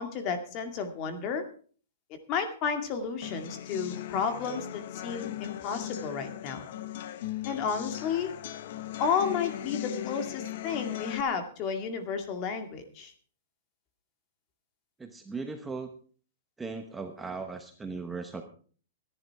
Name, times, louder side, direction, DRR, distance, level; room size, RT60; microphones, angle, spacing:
voice 1, 0.0-1.4 2.3-6.6 7.5-8.3 9.0-13.1, left 6 dB, 35° left, 7 dB, 2.2 m, -32 dB
sound 1, 3.2-11.2, left 12 dB, 55° left, 1.0 m, -38 dB
voice 2, 15.0-15.9 16.6-18.4, right 4 dB, 10° right, 5 dB, 1.1 m, -38 dB
14.5 x 11.0 x 4.7 m, 0.42 s
hypercardioid pair, 155°, 0 cm